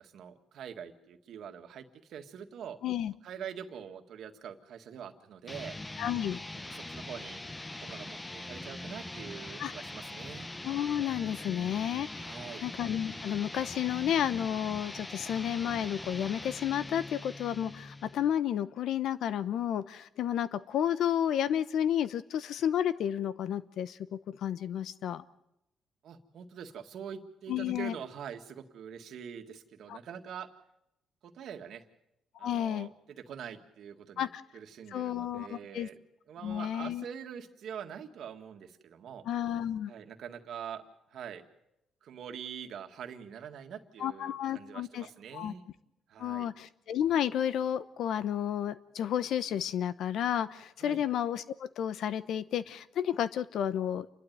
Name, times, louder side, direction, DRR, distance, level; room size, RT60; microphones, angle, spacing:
voice 1, 0.0-2.8 3.2-5.8 6.7-7.4 7.8-10.5 12.2-12.6 26.0-30.5 31.2-31.9 32.4-32.9 33.2-34.3 34.5-36.0 36.3-39.2 39.9-40.8 41.1-41.4 42.0-45.6 46.1-46.5 50.8-51.0, right 8 dB, 70° right, 6 dB, 1.9 m, -44 dB
voice 2, 2.8-3.1 6.0-6.4 9.6-9.7 10.6-25.2 27.5-27.9 29.9-30.0 32.4-32.9 34.2-34.4 34.9-35.9 36.4-37.0 39.3-39.9 44.0-45.5 46.2-54.1, left 10 dB, 75° left, 15 dB, 1.0 m, -31 dB
sound 1, 5.5-18.3, left 2 dB, 15° left, 0.9 m, -42 dB
28.5 x 12.0 x 9.4 m, 0.85 s
cardioid pair, 90°, 0 cm